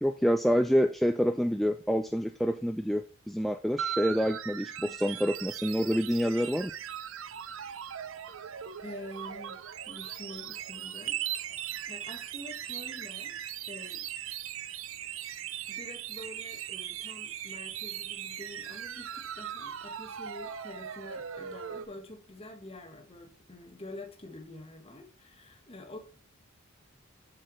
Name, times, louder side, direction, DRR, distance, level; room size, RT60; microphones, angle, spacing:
voice 1, 0.0-6.7, equal, ahead, 0.3 m, -27 dB
sound 1, 3.8-21.9, right 9 dB, 70° right, 0.6 m, -39 dB
voice 2, 8.8-9.6 9.9-13.4 13.7-14.1 15.7-26.0, left 2 dB, 30° left, 1.4 m, -47 dB
7.6 x 6.7 x 3.1 m
head